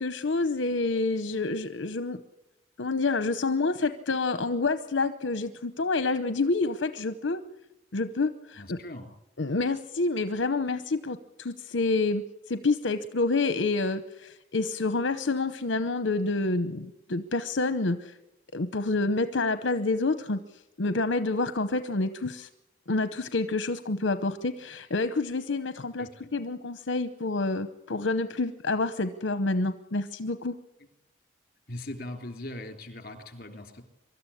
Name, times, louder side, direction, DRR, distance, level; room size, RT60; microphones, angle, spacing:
voice 1, 0.0-2.2 2.8-7.4 7.9-8.8 9.4-18.1 18.5-20.4 20.8-22.5 22.9-30.5, left 3 dB, 75° left, 11 dB, 0.9 m, -28 dB
voice 2, 8.6-9.1 26.0-26.3 30.8-30.9 31.7-33.8, left 1 dB, 50° left, 6 dB, 3.4 m, -40 dB
24.0 x 13.5 x 9.9 m, 0.95 s
head